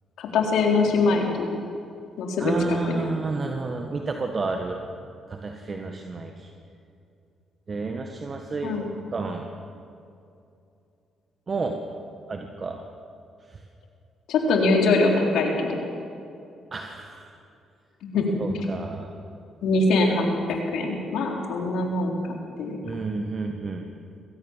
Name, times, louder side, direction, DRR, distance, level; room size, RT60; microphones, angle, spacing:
voice 1, 0.2-1.5 2.2-3.1 8.6-8.9 14.3-15.8 18.0-18.3 19.6-22.2 22.6-22.8, left 3 dB, 80° left, 1 dB, 3.9 m, -23 dB
voice 2, 2.4-4.8 5.3-6.5 7.7-8.8 9.1-9.5 11.5-11.8 12.3-12.8 13.5-13.6 16.7-17.3 18.4-19.1 22.8-23.8, right 3 dB, 40° right, 3 dB, 1.7 m, -31 dB
21.0 x 17.5 x 7.5 m, 2.6 s
cardioid pair, 75°, 0 cm